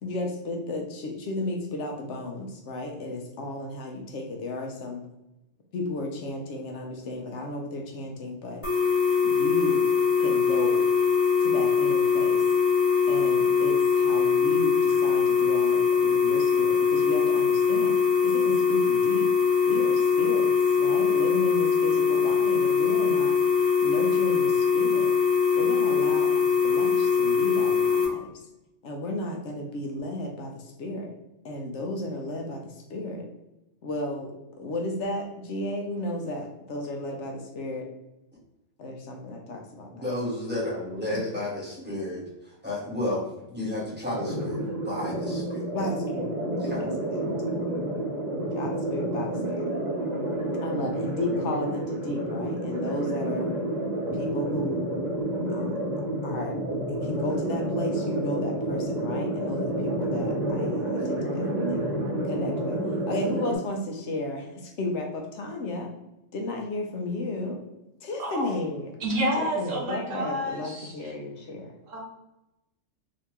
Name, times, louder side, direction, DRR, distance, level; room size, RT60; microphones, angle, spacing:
voice 1, 0.0-5.0 5.7-8.6 9.2-9.9 10.2-10.9 11.4-12.4 13.1-17.9 18.2-19.3 19.7-23.4 23.8-25.1 25.5-28.4 28.8-31.1 31.4-33.3 33.8-37.9 38.8-40.1 45.7-47.4 48.6-49.7 50.6-53.5 54.1-54.9 55.5-55.8 56.2-61.8 62.2-62.8 63.1-65.9 66.3-67.6 68.0-68.9 69.4-71.7, left 2 dB, 70° left, 1 dB, 0.9 m, -34 dB
sound 1, 8.6-28.0, left 6 dB, 10° left, 0.8 m, -22 dB
voice 2, 39.9-43.2 43.5-45.6 46.6-46.8, left 1 dB, 10° right, -6 dB, 1.1 m, -32 dB
sound 2, 44.1-63.6, right 1 dB, 35° right, 1.4 m, -29 dB
voice 3, 69.0-71.1 71.9-72.0, right 1 dB, 75° right, -1 dB, 1.2 m, -29 dB
3.3 x 2.9 x 2.9 m, 0.94 s
omnidirectional pair, 1.3 m